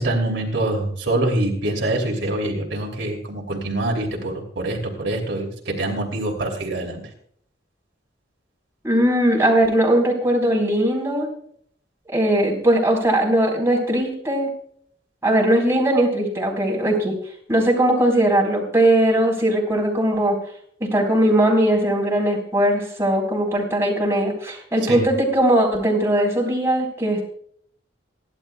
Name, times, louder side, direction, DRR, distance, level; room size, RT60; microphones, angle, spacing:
voice 1, 0.0-7.0 24.9-25.0, right 1 dB, 70° right, 0 dB, 3.0 m, -25 dB
voice 2, 8.8-11.3 12.1-14.5 15.2-17.1 17.5-20.4 20.9-27.3, right 1 dB, 15° right, -2 dB, 4.2 m, -19 dB
27.5 x 11.5 x 2.3 m, 0.63 s
head